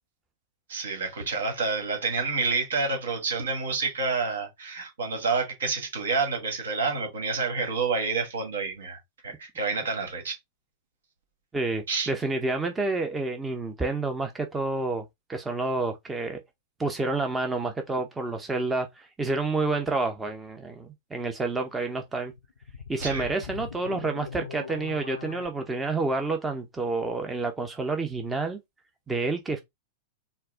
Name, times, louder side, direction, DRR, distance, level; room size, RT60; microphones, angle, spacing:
voice 1, 0.7-10.4 11.9-12.1 23.0-23.3, right 4 dB, 65° right, 1.6 m, -29 dB
voice 2, 11.5-15.0 15.3-16.4 16.8-22.3 22.9-28.6 29.1-29.6, right 3 dB, 15° right, 0.6 m, -29 dB
sound 1, 22.2-25.5, left 6 dB, 70° left, 0.4 m, -40 dB
4.4 x 2.1 x 3.5 m
figure-of-eight pair, 95°, 0 cm